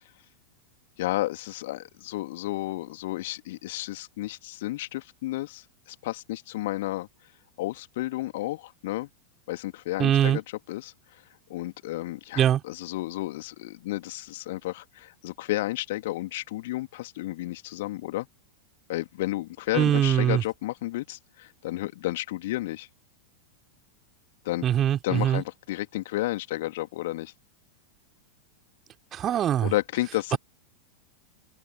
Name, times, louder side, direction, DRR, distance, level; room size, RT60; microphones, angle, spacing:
voice 1, 1.0-7.1 7.6-9.1 9.5-10.4 10.7-10.9 11.5-18.3 18.9-22.9 24.4-24.6 25.0-27.3 29.6-30.4, left 17 dB, 55° left, 2.9 m, -32 dB
voice 2, 10.0-10.4 12.4-12.6 19.7-20.4 24.6-25.4 29.1-29.7, right 10 dB, 30° right, 3.5 m, -22 dB
figure-of-eight pair, 90°, 0 cm